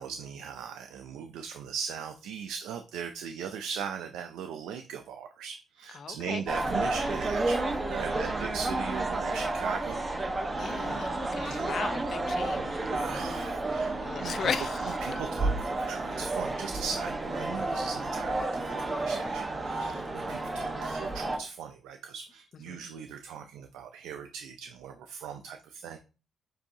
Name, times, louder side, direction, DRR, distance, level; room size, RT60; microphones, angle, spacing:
voice 1, 0.0-10.0 10.9-11.7 12.9-14.5 15.0-26.0, right 7 dB, 90° right, 6 dB, 0.4 m, -39 dB
voice 2, 5.9-6.4 8.1-8.5 10.5-12.8 14.0-15.0 17.5-17.7 22.7-22.8, left 6 dB, 55° left, 11 dB, 0.5 m, -36 dB
sound 1, 6.5-21.4, right 2 dB, 25° right, 0.8 m, -31 dB
7.3 x 2.7 x 2.7 m, 0.33 s
cardioid pair, 90°, 0 cm